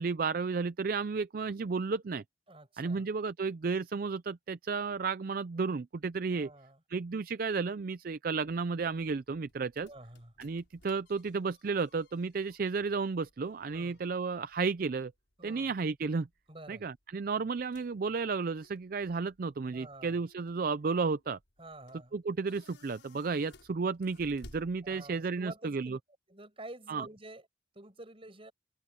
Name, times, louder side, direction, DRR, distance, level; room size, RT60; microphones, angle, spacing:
voice 1, 0.0-2.2 2.8-6.5 6.9-9.9 10.4-15.1 15.4-16.3 16.7-21.4 22.1-26.0 26.9-27.1, right 4 dB, 50° right, 0.4 m, -33 dB
voice 2, 2.5-3.1 6.3-6.8 9.8-10.3 13.7-14.0 15.4-15.7 16.5-16.8 19.7-20.2 21.6-22.2 24.8-26.0 26.3-27.5 27.7-28.5, right 2 dB, 30° right, 5.9 m, -49 dB
sound 1, 9.0-25.4, left 1 dB, 75° left, 6.5 m, -60 dB
head